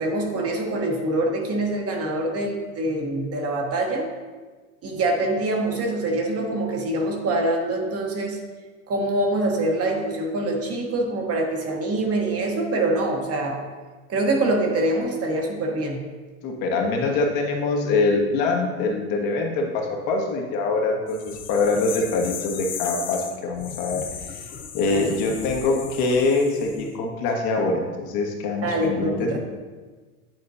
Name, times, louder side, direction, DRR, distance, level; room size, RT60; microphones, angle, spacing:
voice 1, 0.0-4.1 4.8-8.4 8.9-13.6 14.1-16.0 24.9-25.2 28.6-29.4, right 2 dB, 30° right, 1 dB, 1.1 m, -25 dB
voice 2, 16.4-24.4 24.7-29.4, left 3 dB, 50° left, 1 dB, 1.4 m, -24 dB
sound 1, 21.1-26.9, left 7 dB, 25° left, 0.3 m, -36 dB
9.2 x 4.2 x 2.7 m, 1.4 s
supercardioid pair, 110°, 45 cm